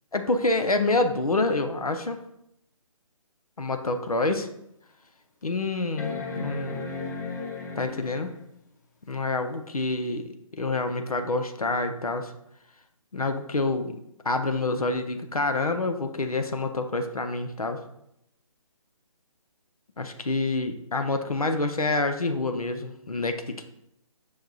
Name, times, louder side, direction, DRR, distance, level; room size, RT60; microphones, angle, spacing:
voice 1, 0.1-2.2 3.6-4.5 5.4-6.9 7.8-8.3 9.1-12.3 13.1-14.0 14.2-17.8 20.0-23.6, left 2 dB, 85° left, 6 dB, 0.5 m, -27 dB
sound 1, 3.8-3.9 4.5-4.6 6.0-8.5 10.2-10.3, left 4 dB, 30° left, 0.5 m, -35 dB
6.2 x 2.6 x 2.3 m, 0.77 s
figure-of-eight pair, 140°, 18 cm